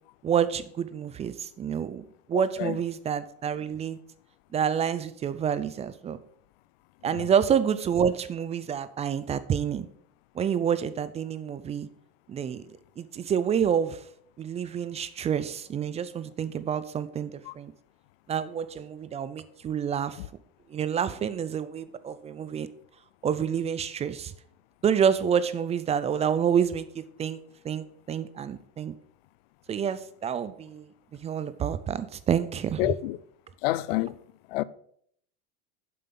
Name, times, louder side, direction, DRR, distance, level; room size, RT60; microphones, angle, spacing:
voice 1, 0.2-4.0 4.5-6.2 7.0-9.9 10.3-11.9 12.3-12.6 13.0-14.0 14.4-17.7 18.3-20.2 20.7-22.7 23.2-24.3 24.8-27.4 27.6-28.9 29.7-32.9, right 8 dB, 20° right, 0.4 m, -28 dB
voice 2, 2.3-2.8 17.5-17.6 32.8-33.2 33.6-34.2 34.5-34.6, left 17 dB, 75° left, 0.5 m, -28 dB
7.6 x 5.3 x 5.9 m
supercardioid pair, 125°, 30 cm